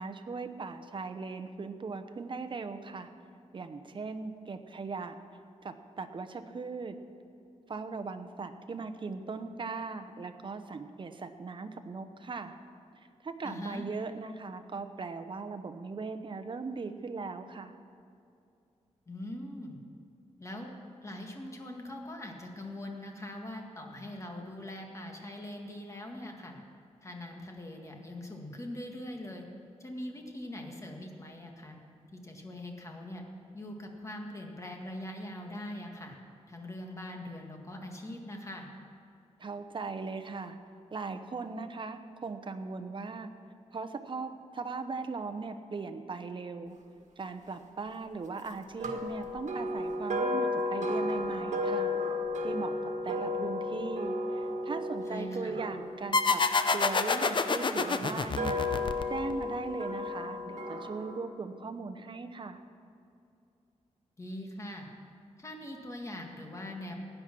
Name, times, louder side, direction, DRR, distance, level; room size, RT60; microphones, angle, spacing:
voice 1, 0.0-3.1 3.5-5.2 5.6-7.0 7.7-12.5 13.2-17.7 39.4-40.6 40.9-43.3 43.7-46.8 47.2-51.9 52.4-52.8 53.0-56.4 56.7-58.6 59.1-62.6, right 4 dB, 40° right, 8 dB, 0.9 m, -39 dB
voice 2, 13.4-13.9 19.1-19.8 20.4-20.7 21.0-26.6 27.0-29.4 29.8-31.8 32.1-33.2 33.5-36.2 36.5-38.7 55.1-55.6 64.2-64.9 65.4-66.9, left 1 dB, 25° left, 1 dB, 1.9 m, -42 dB
sound 1, 48.8-57.0 57.7-61.2, left 2 dB, 70° right, 1.6 m, -33 dB
sound 2, 56.1-59.4, left 4 dB, 40° left, 0.7 m, -28 dB
16.0 x 10.0 x 6.1 m, 2.5 s
wide cardioid pair, 120°, 12 cm